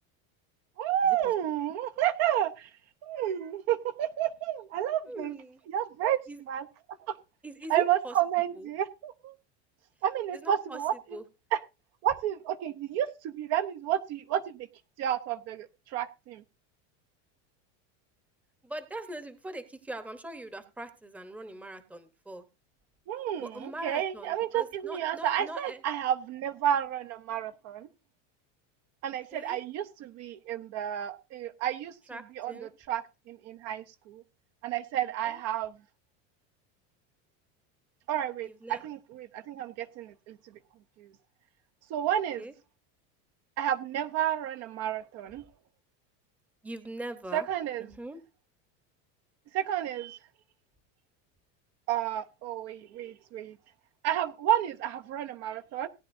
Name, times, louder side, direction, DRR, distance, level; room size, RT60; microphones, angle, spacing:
voice 1, 0.8-2.7 3.0-5.4 5.7-6.2 6.5-6.7 7.1-7.2 7.7-9.4 10.0-11.2 11.5-11.6 12.0-14.7 15.0-16.4 23.1-27.9 29.0-34.2 34.6-35.7 38.1-40.4 41.0-41.1 41.9-42.4 43.6-45.4 47.3-47.9 49.5-50.2 51.9-53.6 54.0-55.9, right 11 dB, 45° right, 0.7 m, -31 dB
voice 2, 5.1-5.6 6.3-6.4 7.4-8.1 8.6-8.7 10.3-10.8 11.1-11.2 18.6-22.5 23.4-25.8 29.3-29.6 32.1-32.7 35.3-35.4 38.6-38.8 42.4-42.5 46.6-47.5 47.8-48.2, right 1 dB, 5° right, 0.9 m, -41 dB
18.0 x 9.6 x 2.6 m
supercardioid pair, 150°, 36 cm